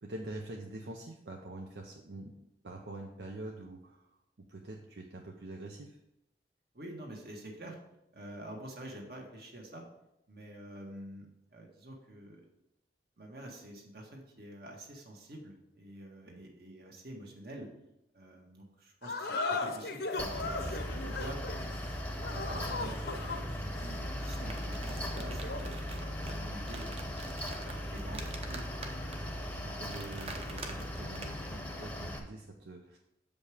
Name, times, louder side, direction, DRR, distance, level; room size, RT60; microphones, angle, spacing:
voice 1, 0.0-2.3 2.6-4.2 4.5-6.0 16.3-16.4 25.9-26.0 29.6-33.0, right 2 dB, 75° right, 1 dB, 0.7 m, -45 dB
voice 2, 6.7-7.8 8.1-9.8 10.3-12.5 13.2-17.7 18.1-21.4 21.8-27.1 27.5-28.9, right 1 dB, 60° right, 0 dB, 1.6 m, -48 dB
sound 1, 19.0-25.7, left 3 dB, 65° left, 0.8 m, -38 dB
Mechanical fan, 20.2-32.2, equal, 10° left, 0.8 m, -38 dB
sound 2, 24.1-31.6, right 3 dB, 35° right, 0.8 m, -47 dB
6.9 x 5.3 x 4.9 m, 0.85 s
head